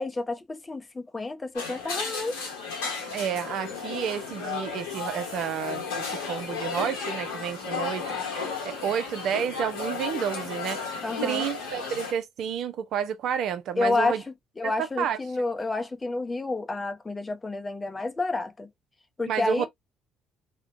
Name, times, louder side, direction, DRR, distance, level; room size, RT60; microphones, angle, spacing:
voice 1, 0.0-2.3 11.0-11.4 13.8-14.2 14.6-18.7 19.2-19.7, left 3 dB, 25° left, 0.6 m, -29 dB
sound 1, 1.5-12.1, left 5 dB, 75° left, 0.8 m, -34 dB
voice 2, 3.1-14.2 14.6-14.7 15.0-15.2 19.3-19.7, right 8 dB, 60° right, 0.4 m, -30 dB
2.4 x 2.1 x 2.5 m
figure-of-eight pair, 50°, 0 cm